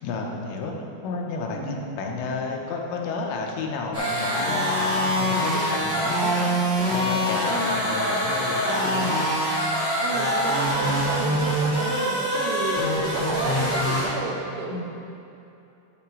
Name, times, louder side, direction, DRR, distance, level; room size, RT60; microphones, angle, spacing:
voice 1, 0.0-0.7 1.0-9.1 14.7-14.8, left 3 dB, 80° left, 1 dB, 2.9 m, -31 dB
voice 2, 1.5-1.8 7.5-7.9 10.0-14.8, right 3 dB, 85° right, 1 dB, 3.3 m, -32 dB
sound 1, 3.9-14.0, equal, 40° right, 0.8 m, -24 dB
10.5 x 4.3 x 6.0 m, 2.7 s
omnidirectional pair, 5.3 m